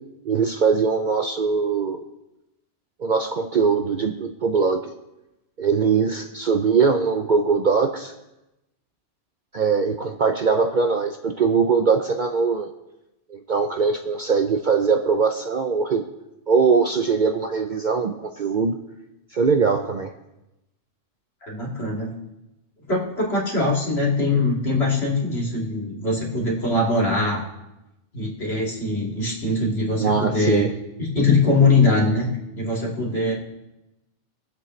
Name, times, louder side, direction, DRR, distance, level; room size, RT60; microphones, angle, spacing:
voice 1, 0.2-2.0 3.0-4.9 5.6-8.1 9.5-12.7 13.3-16.1 16.5-18.8 19.3-20.1 30.0-30.7, right 5 dB, 50° right, 5 dB, 0.6 m, -21 dB
voice 2, 21.4-22.1 22.9-27.4 28.1-30.7 31.0-33.3, left 3 dB, 55° left, -2 dB, 2.6 m, -22 dB
22.0 x 7.7 x 3.1 m, 0.94 s
omnidirectional pair, 1.3 m